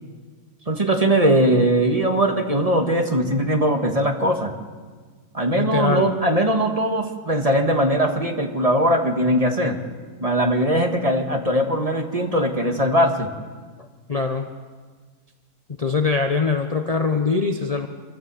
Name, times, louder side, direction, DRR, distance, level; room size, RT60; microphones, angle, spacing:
voice 1, 0.7-4.5 5.3-9.8 10.2-13.3, right 1 dB, 25° right, 3 dB, 1.9 m, -20 dB
voice 2, 5.6-6.1 14.1-14.5 15.8-17.9, left 4 dB, 30° left, 4 dB, 0.9 m, -22 dB
27.0 x 13.0 x 7.9 m, 1.5 s
omnidirectional pair, 1.5 m